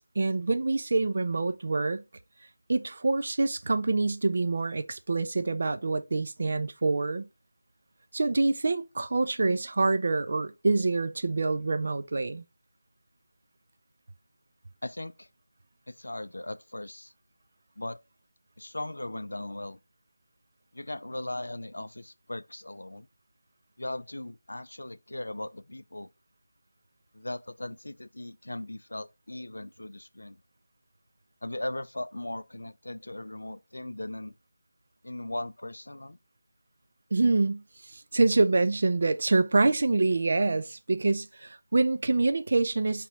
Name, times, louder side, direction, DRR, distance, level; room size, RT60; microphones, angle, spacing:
voice 1, 0.0-2.0 2.7-7.2 8.1-12.4 37.1-37.6 37.9-43.1, right 3 dB, 40° right, 0.4 m, -26 dB
voice 2, 14.8-15.3 15.9-17.1 17.8-18.0 18.6-19.8 20.7-23.1 23.8-26.1 27.1-30.4 31.4-34.3 35.0-36.2, left 1 dB, 80° left, 0.4 m, -38 dB
3.0 x 3.0 x 4.6 m
figure-of-eight pair, 175°, 0 cm